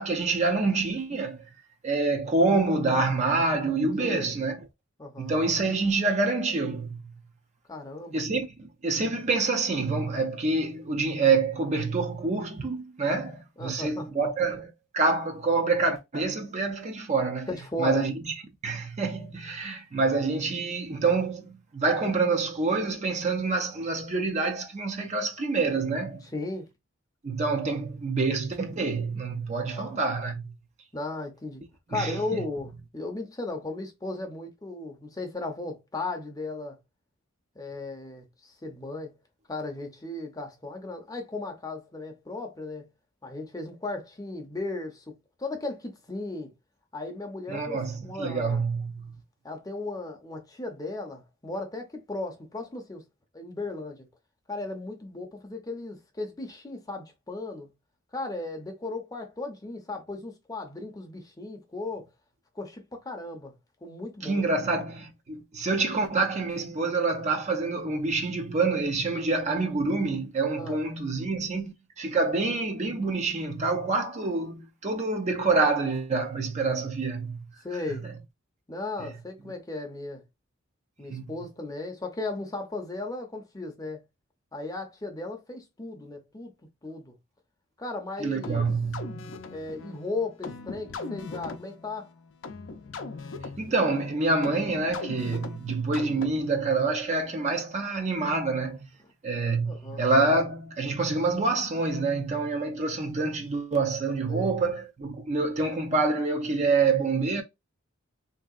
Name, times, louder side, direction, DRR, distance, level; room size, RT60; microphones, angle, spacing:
voice 1, 0.0-1.4 1.8-4.6 5.2-7.0 8.1-17.5 17.8-18.1 18.6-26.3 27.2-30.5 31.9-32.2 47.5-49.1 64.2-77.4 81.1-81.2 88.2-89.2 93.6-98.9 99.2-107.4, right 3 dB, 35° right, 0.5 m, -27 dB
voice 2, 4.0-4.3 5.0-5.4 7.7-8.2 13.6-14.0 17.5-18.1 26.3-26.7 29.7-30.0 30.9-31.6 31.9-36.8 37.6-39.1 39.5-42.9 43.2-45.0 45.4-46.5 46.9-48.7 49.4-53.0 53.3-54.1 54.5-57.7 58.1-62.1 62.6-63.5 63.8-64.6 70.6-70.8 77.6-78.1 78.7-80.2 81.0-84.0 84.5-86.5 86.8-87.1 87.8-88.7 89.5-92.1 99.6-100.0 104.3-104.6, left 2 dB, 20° left, 0.6 m, -36 dB
sound 1, 88.4-96.6, left 3 dB, 65° left, 0.5 m, -40 dB
3.3 x 2.7 x 2.4 m
head